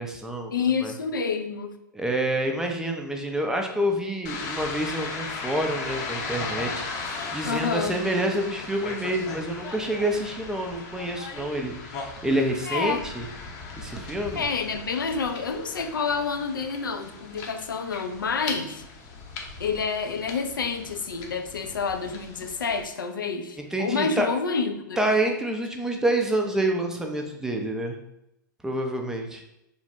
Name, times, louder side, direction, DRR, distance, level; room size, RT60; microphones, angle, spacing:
voice 1, 0.0-0.5 0.8-0.9 1.9-6.8 7.3-13.3 13.8-14.5 23.6-24.3 25.0-28.0 28.6-29.4, right 1 dB, 5° right, 2 dB, 0.3 m, -27 dB
voice 2, 0.5-1.8 7.4-8.0 12.6-13.0 14.4-18.8 19.6-25.0, left 5 dB, 85° left, 6 dB, 0.4 m, -28 dB
sound 1, 4.2-22.8, left 4 dB, 40° left, 0.6 m, -37 dB
3.1 x 2.1 x 2.6 m, 0.86 s
hypercardioid pair, 105°, 11 cm